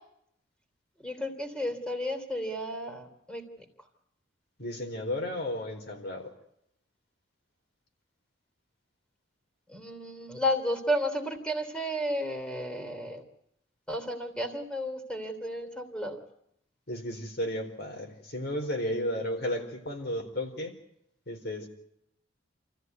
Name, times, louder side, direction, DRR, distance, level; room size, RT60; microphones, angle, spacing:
voice 1, 1.0-3.4 9.7-13.2 13.9-16.2, equal, 5° left, 6 dB, 3.4 m, -32 dB
voice 2, 4.6-6.3 16.9-20.7 21.3-21.7, left 1 dB, 55° left, 3 dB, 4.4 m, -33 dB
28.0 x 15.0 x 9.5 m, 0.77 s
head